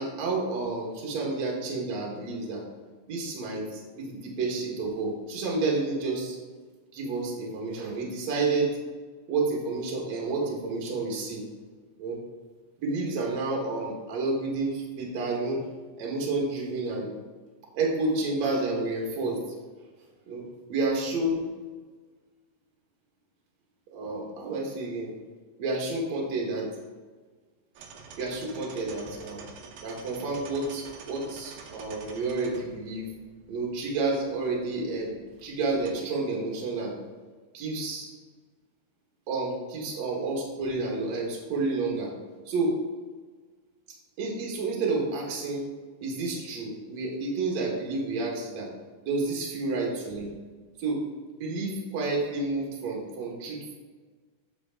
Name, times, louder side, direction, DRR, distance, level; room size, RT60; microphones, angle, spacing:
voice 1, 0.0-2.6 3.1-6.4 6.9-8.7 9.3-11.4 12.0-12.2 12.8-15.6 16.0-17.1 17.7-19.4 20.3-20.4 20.7-21.5 23.9-25.1 25.6-26.7 28.2-29.4 29.8-33.1 33.5-35.2 35.4-36.9 37.5-38.1 39.3-42.1 42.5-42.7 44.2-45.7 46.0-48.7 49.1-50.3 50.8-51.0 51.4-53.7, right 3 dB, 55° right, -2 dB, 2.6 m, -30 dB
sound 1, 27.8-35.9, right 5 dB, 85° right, 2.8 m, -48 dB
8.2 x 6.1 x 3.7 m, 1.4 s
omnidirectional pair, 4.2 m